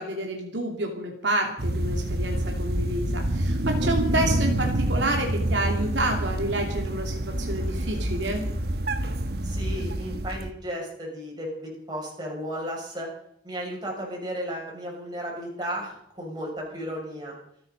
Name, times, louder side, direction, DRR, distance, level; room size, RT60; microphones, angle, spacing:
voice 1, 0.0-8.4, right 1 dB, 75° right, 2 dB, 2.8 m, -29 dB
sound 1, 1.6-10.5, right 1 dB, 55° right, 1.3 m, -27 dB
voice 2, 3.8-4.3 9.4-13.1 13.4-17.4, equal, 20° right, -2 dB, 6.6 m, -34 dB
27.0 x 9.7 x 5.4 m, 0.71 s
head